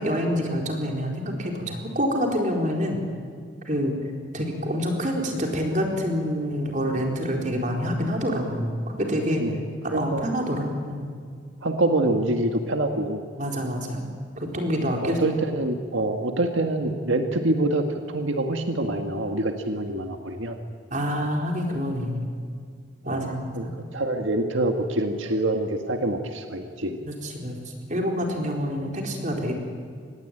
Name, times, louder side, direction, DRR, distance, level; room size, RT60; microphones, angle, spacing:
voice 1, 0.0-3.0 3.6-3.9 4.3-9.4 9.9-11.1 13.4-14.1 14.4-15.2 20.9-22.3 23.0-23.7 27.0-29.6, equal, 40° right, 1 dB, 4.2 m, -27 dB
voice 2, 9.4-10.3 11.6-13.2 15.0-20.6 23.0-23.7 23.9-27.0, right 2 dB, 85° right, 4 dB, 1.7 m, -26 dB
25.5 x 20.0 x 9.1 m, 2.1 s
head